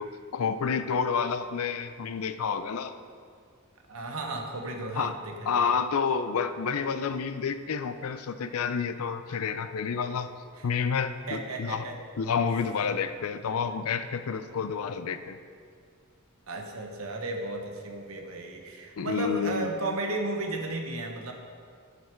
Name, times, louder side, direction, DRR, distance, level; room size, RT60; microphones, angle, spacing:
voice 1, 0.0-2.9 5.0-5.1 5.5-10.3 10.6-11.8 12.2-15.4 19.0-19.7, left 6 dB, 85° left, 11 dB, 0.5 m, -29 dB
voice 2, 3.9-5.6 10.5-10.6 11.3-12.0 16.5-21.3, right 2 dB, 75° right, 3 dB, 1.1 m, -34 dB
11.0 x 6.8 x 4.5 m, 2.1 s
head